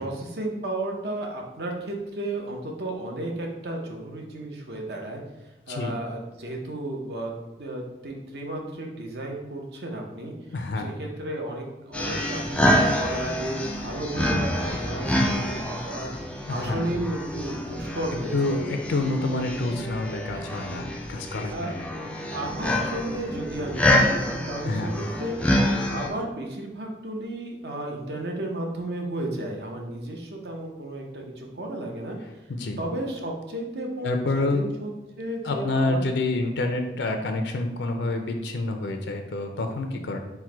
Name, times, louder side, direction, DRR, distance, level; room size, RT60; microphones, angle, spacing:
voice 1, 0.0-5.2 5.7-7.3 7.6-10.3 10.8-16.1 16.5-18.6 20.7-21.0 21.5-21.7 22.3-25.4 25.8-32.2 32.8-34.9 35.2-36.1 39.8-40.0, right 1 dB, 70° right, 0 dB, 0.8 m, -33 dB
voice 2, 10.5-10.9 16.5-16.9 18.3-21.9 24.6-24.9 32.5-32.8 34.0-34.6 35.4-40.2, left 2 dB, 85° left, 5 dB, 0.5 m, -28 dB
sound 1, 11.9-26.1, left 1 dB, 5° left, 0.3 m, -27 dB
4.5 x 2.2 x 4.5 m, 1.0 s
head